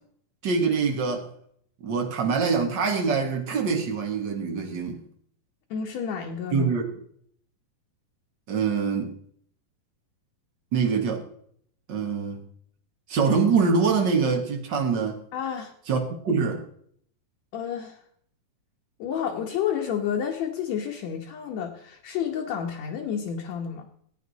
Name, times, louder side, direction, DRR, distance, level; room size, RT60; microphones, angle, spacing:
voice 1, 0.4-1.3 1.8-5.0 6.5-6.9 8.5-9.1 10.7-11.3 11.9-12.4 13.1-15.2 15.9-16.6, right 5 dB, 85° right, 2 dB, 0.9 m, -24 dB
voice 2, 5.7-6.7 15.3-15.7 17.5-18.0 19.0-23.9, left 8 dB, 65° left, 0 dB, 2.0 m, -30 dB
16.5 x 9.5 x 4.0 m, 0.64 s
omnidirectional pair, 4.2 m